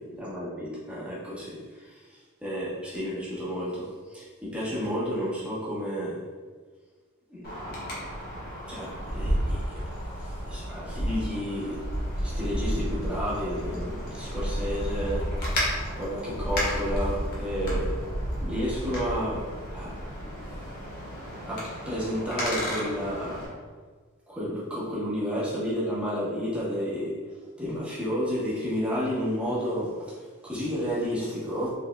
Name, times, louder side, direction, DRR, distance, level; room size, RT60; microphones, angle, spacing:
voice 1, 0.0-6.2 7.3-8.0 8.3-9.9 10.2-11.9 12.2-15.3 15.8-17.9 18.4-20.0 20.2-20.6 21.5-23.5 24.3-27.2 27.6-31.7, equal, 5° right, -8 dB, 1.0 m, -32 dB
Wind, 7.4-23.5, equal, 45° left, 1.2 m, -32 dB
4.4 x 3.5 x 2.2 m, 1.5 s
head